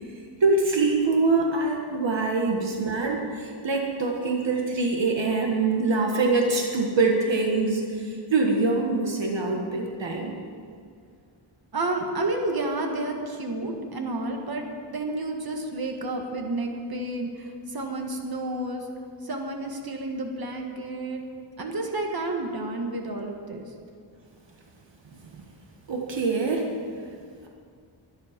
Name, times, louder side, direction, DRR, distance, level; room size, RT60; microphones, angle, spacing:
voice 1, 0.4-10.3 25.9-26.7, right 3 dB, 65° right, 0 dB, 1.6 m, -24 dB
voice 2, 11.7-18.9 19.2-21.2 21.6-23.6, right 2 dB, 50° right, 2 dB, 1.8 m, -30 dB
23.0 x 10.0 x 5.2 m, 2.3 s
wide cardioid pair, 140°, 48 cm